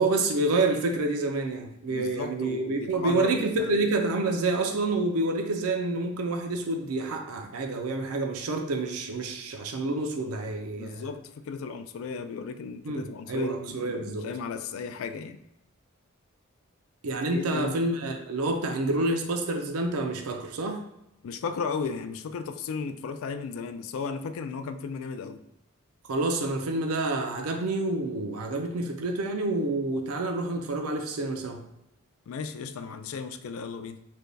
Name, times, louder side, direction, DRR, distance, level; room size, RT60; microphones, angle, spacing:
voice 1, 0.0-11.1 12.8-14.2 17.0-20.8 26.1-31.6, right 2 dB, 80° right, 4 dB, 0.5 m, -28 dB
voice 2, 1.9-3.7 10.8-15.4 17.3-17.8 21.2-25.4 32.3-34.0, left 5 dB, 65° left, 10 dB, 0.3 m, -35 dB
3.4 x 2.2 x 3.9 m, 0.84 s
head